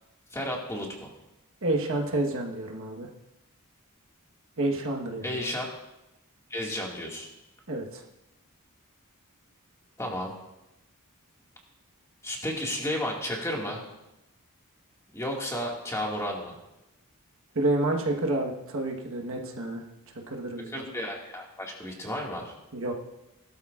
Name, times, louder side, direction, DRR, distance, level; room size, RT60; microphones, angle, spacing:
voice 1, 0.3-1.1 5.2-5.7 6.5-7.3 10.0-10.3 12.2-13.8 15.1-16.6 20.7-22.5, left 1 dB, 15° left, -1 dB, 2.0 m, -32 dB
voice 2, 1.6-3.1 4.6-5.4 7.7-8.0 17.5-19.8 20.3-20.8 22.7-22.9, right 2 dB, 60° right, 1 dB, 1.3 m, -29 dB
17.5 x 12.5 x 2.5 m, 0.93 s
head